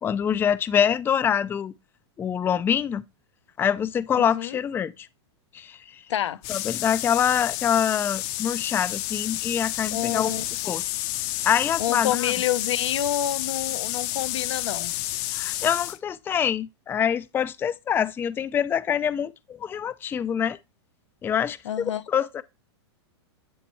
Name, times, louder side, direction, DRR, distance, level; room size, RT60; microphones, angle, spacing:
voice 1, 0.0-1.7 2.2-3.0 3.6-5.1 5.5-6.0 6.5-10.3 10.6-10.9 11.4-12.3 15.3-20.6 21.2-21.6 22.1-22.4, left 8 dB, 15° left, 0.4 m, -25 dB
voice 2, 4.2-4.6 6.1-6.4 9.9-10.4 11.8-14.9 21.6-22.0, left 11 dB, 80° left, 0.7 m, -28 dB
sound 1, 6.4-16.0, left 16 dB, 45° left, 0.7 m, -30 dB
10.0 x 4.3 x 3.1 m
hypercardioid pair, 120°, 15 cm